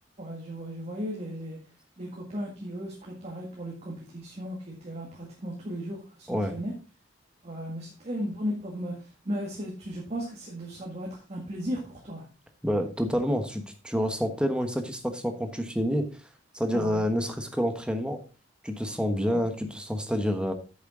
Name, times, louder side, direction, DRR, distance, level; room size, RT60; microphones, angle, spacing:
voice 1, 0.2-1.6 2.0-6.7 7.4-8.9 9.3-12.2 16.7-17.0 19.3-19.4, equal, 35° right, -2 dB, 2.0 m, -36 dB
voice 2, 12.6-16.1 16.5-18.2 18.6-20.5, equal, 5° right, 6 dB, 1.2 m, -28 dB
9.0 x 7.4 x 3.8 m, 0.33 s
head